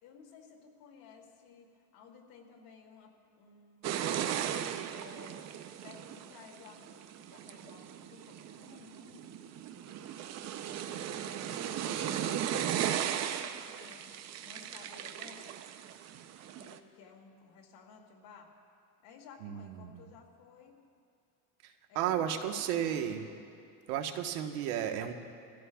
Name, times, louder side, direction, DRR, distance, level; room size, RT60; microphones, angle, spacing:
voice 1, 0.0-5.5 5.8-9.5 10.6-15.6 16.6-18.5 19.0-20.8 21.9-23.4, left 5 dB, 60° left, 1 dB, 2.5 m, -55 dB
sound 1, 3.8-16.8, right 10 dB, 40° right, 0.7 m, -37 dB
voice 2, 19.4-20.1 21.6-23.2 23.9-25.1, right 9 dB, 80° right, 5 dB, 1.3 m, -33 dB
24.5 x 15.5 x 2.4 m, 2.4 s
supercardioid pair, 135°, 43 cm